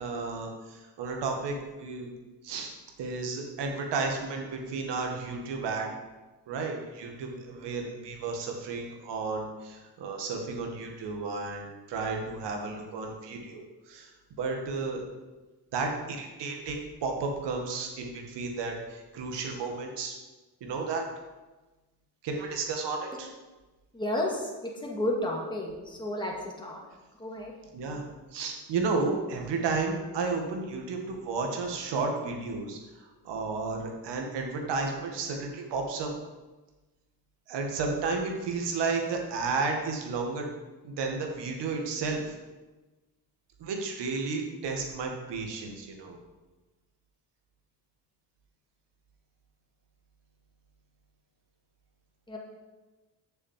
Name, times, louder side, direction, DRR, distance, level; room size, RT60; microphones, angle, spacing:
voice 1, 0.0-2.1 2.4-5.9 6.5-14.1 14.4-15.0 15.7-20.1 20.6-21.0 22.2-23.3 27.7-28.0 28.3-32.8 33.3-36.1 37.5-40.5 40.8-42.3 43.6-46.2, right 4 dB, 85° right, 3 dB, 1.9 m, -32 dB
voice 2, 23.9-26.8 27.2-27.5 52.3-52.4, left 1 dB, 10° left, -1 dB, 2.2 m, -32 dB
7.2 x 6.8 x 7.5 m, 1.2 s
cardioid pair, 110°, 41 cm